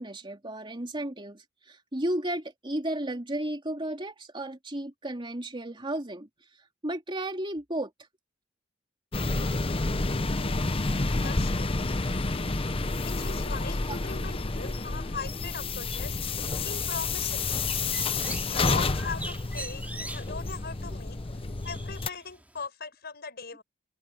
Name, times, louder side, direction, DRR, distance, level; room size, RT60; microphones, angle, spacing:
voice 1, 0.0-6.3 6.8-7.9 13.9-14.0 14.5-14.8, right 1 dB, 25° right, 3.0 m, -33 dB
sound 1, 9.1-22.1, left 3 dB, 30° left, 0.8 m, -29 dB
voice 2, 10.4-10.8 11.2-11.8 13.0-16.2 16.6-17.6 18.4-21.2 21.6-23.6, left 5 dB, 55° left, 5.5 m, -40 dB
Bird, 17.2-22.7, right 2 dB, 10° right, 3.5 m, -43 dB
open air
head